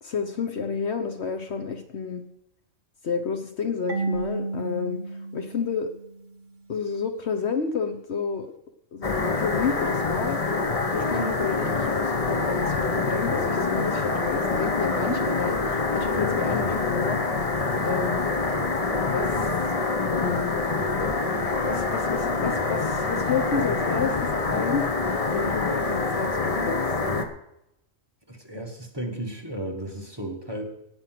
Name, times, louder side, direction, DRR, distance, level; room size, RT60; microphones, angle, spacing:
voice 1, 0.0-2.2 3.0-5.9 6.7-8.5 8.9-10.4 10.9-17.2 17.8-18.3 18.9-19.5 20.0-20.7 21.6-24.9 25.3-26.8, left 5 dB, 55° left, 7 dB, 1.1 m, -30 dB
Marimba xylophone / Wood, 3.9-6.6, right 3 dB, 65° right, 1.7 m, -33 dB
sound 1, 9.0-27.2, left 3 dB, 30° left, 0.9 m, -26 dB
voice 2, 28.3-30.6, right 1 dB, 20° right, 1 dB, 1.6 m, -34 dB
18.0 x 6.3 x 6.0 m, 0.84 s
omnidirectional pair, 1.4 m